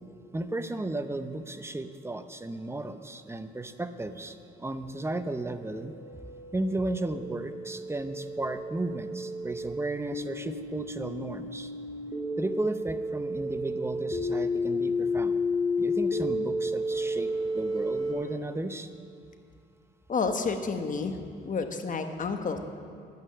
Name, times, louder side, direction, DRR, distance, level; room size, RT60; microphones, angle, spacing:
voice 1, 0.3-6.0 6.5-11.7 12.4-15.3 15.8-18.9, right 2 dB, 15° right, 10 dB, 0.7 m, -34 dB
sound 1, 4.9-18.1, left 1 dB, 25° left, 2.5 m, -32 dB
voice 2, 20.1-21.2 21.4-22.6, left 4 dB, 40° left, 7 dB, 1.1 m, -30 dB
11.0 x 9.4 x 6.8 m, 2.4 s
cardioid pair, 90°, 20 cm